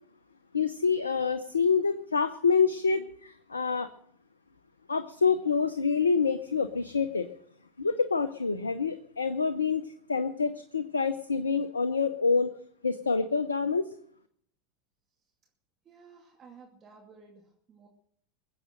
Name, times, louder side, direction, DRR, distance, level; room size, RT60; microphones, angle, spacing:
voice 1, 0.5-3.9 4.9-7.3 7.8-12.5 12.8-13.9, left 5 dB, 85° left, 12 dB, 0.6 m, -27 dB
voice 2, 15.8-17.9, right 5 dB, 30° right, 1 dB, 2.4 m, -54 dB
22.0 x 7.8 x 6.3 m, 0.66 s
figure-of-eight pair, 85°, 0 cm